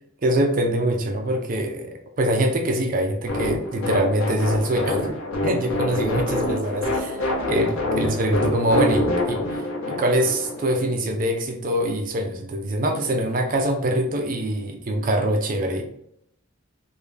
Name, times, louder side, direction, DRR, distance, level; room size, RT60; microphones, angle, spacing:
voice 1, 0.2-5.1 5.4-15.8, right 1 dB, 40° right, 4 dB, 0.4 m, -24 dB
sound 1, 3.3-10.7, left 1 dB, 85° left, 0.9 m, -26 dB
3.6 x 2.2 x 3.2 m, 0.74 s
head